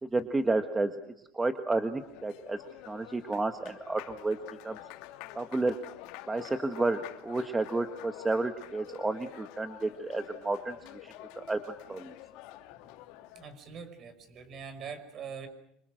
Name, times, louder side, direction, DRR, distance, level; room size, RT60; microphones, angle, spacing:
voice 1, 0.0-0.9 1.3-4.4 4.6-4.8 5.3-5.7 6.3-11.6 11.9-12.1, right 2 dB, 10° right, 8 dB, 1.5 m, -31 dB
Applause, 1.7-13.6, left 14 dB, 70° left, 2.8 m, -48 dB
voice 2, 13.3-15.5, right 6 dB, 40° right, 10 dB, 5.6 m, -43 dB
27.0 x 26.0 x 6.5 m, 0.78 s
supercardioid pair, 135°, 0 cm